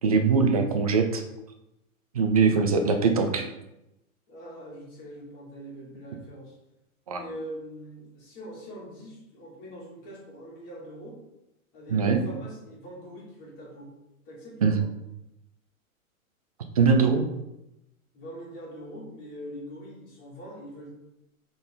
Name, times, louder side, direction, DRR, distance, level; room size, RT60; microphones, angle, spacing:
voice 1, 0.0-1.2 2.1-3.5 7.1-7.2 11.9-12.2 14.6-14.8 16.8-17.2, right 5 dB, 30° right, 5 dB, 0.4 m, -22 dB
voice 2, 4.3-6.6 7.1-11.2 11.7-13.9 14.3-14.9 18.1-20.9, equal, 25° left, -5 dB, 2.2 m, -43 dB
6.8 x 3.9 x 3.8 m, 0.91 s
supercardioid pair, 170°, 43 cm